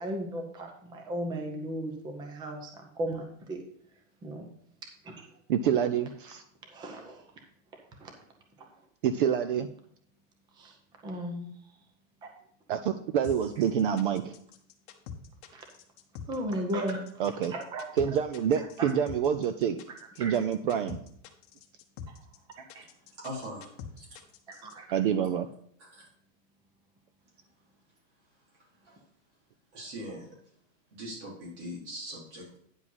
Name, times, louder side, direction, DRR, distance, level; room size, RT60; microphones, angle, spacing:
voice 1, 0.0-2.7 3.0-3.6 4.2-4.4 5.0-5.1 6.7-7.2 8.0-8.1 10.6-10.7 11.0-11.5 12.2-12.3 15.5-15.6 16.3-17.0 17.5-17.8 18.8-18.9 20.2-20.3 22.7-22.8 24.5-25.0, right 1 dB, 10° right, 3 dB, 0.7 m, -35 dB
voice 2, 5.5-6.4 9.0-9.7 12.7-14.3 17.2-17.5 18.0-19.8 20.2-21.0 24.9-25.5, right 8 dB, 45° right, 10 dB, 0.4 m, -27 dB
sound 1, 13.2-24.7, left 7 dB, 40° left, 1.0 m, -45 dB
voice 3, 23.2-23.7 24.0-24.1 25.9-26.0 28.8-29.0 29.7-30.3 31.0-32.6, equal, 60° right, -5 dB, 4.1 m, -40 dB
9.8 x 5.0 x 5.4 m, 0.66 s
supercardioid pair, 170°, 40 cm